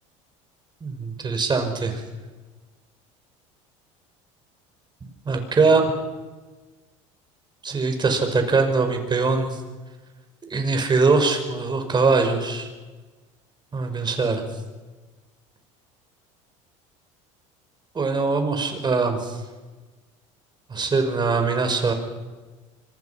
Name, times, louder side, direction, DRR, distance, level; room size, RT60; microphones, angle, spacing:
voice 1, 0.8-2.0 5.3-5.9 7.6-9.6 10.5-12.7 13.7-14.4 17.9-19.4 20.7-21.9, right 4 dB, 25° right, 6 dB, 5.7 m, -22 dB
25.5 x 25.0 x 5.9 m, 1.3 s
supercardioid pair, 85°, 17 cm